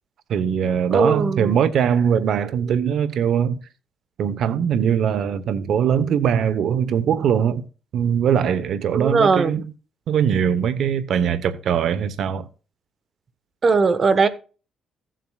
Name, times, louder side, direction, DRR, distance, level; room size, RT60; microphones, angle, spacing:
voice 1, 0.3-3.6 4.2-7.6 7.9-9.6 10.1-12.5, right 8 dB, 70° right, 1.0 m, -21 dB
voice 2, 0.9-1.6 8.9-9.6 13.6-14.3, right 4 dB, 45° right, 1.3 m, -19 dB
15.5 x 7.6 x 2.4 m
cardioid pair, 90°, 0 cm